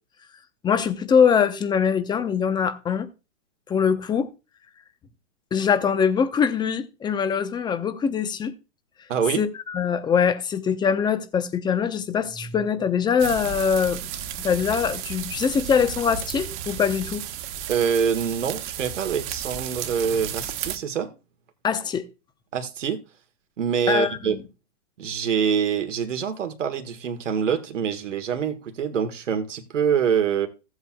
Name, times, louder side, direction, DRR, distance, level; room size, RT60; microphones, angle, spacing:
voice 1, 0.6-3.1 3.7-4.3 5.5-8.5 9.4-14.1 14.4-17.2 21.6-22.0 23.9-24.4, left 7 dB, 10° left, 0.7 m, -23 dB
voice 2, 9.1-9.4 17.7-21.1 22.5-23.0 23.6-24.4 25.0-30.5, right 7 dB, 85° right, 1.5 m, -25 dB
sound 1, 13.2-20.8, right 9 dB, 40° right, 1.3 m, -33 dB
15.5 x 8.0 x 2.3 m
hypercardioid pair, 135°, 36 cm